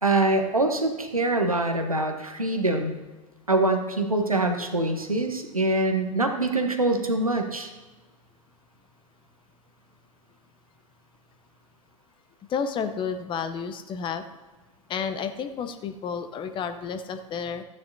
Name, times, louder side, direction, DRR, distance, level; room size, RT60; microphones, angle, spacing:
voice 1, 0.0-3.0 3.5-7.7, right 2 dB, 85° right, 5 dB, 1.1 m, -24 dB
voice 2, 12.5-14.2 14.9-17.6, left 6 dB, 30° left, 9 dB, 0.8 m, -31 dB
14.0 x 9.5 x 2.7 m, 1.2 s
figure-of-eight pair, 85°, 18 cm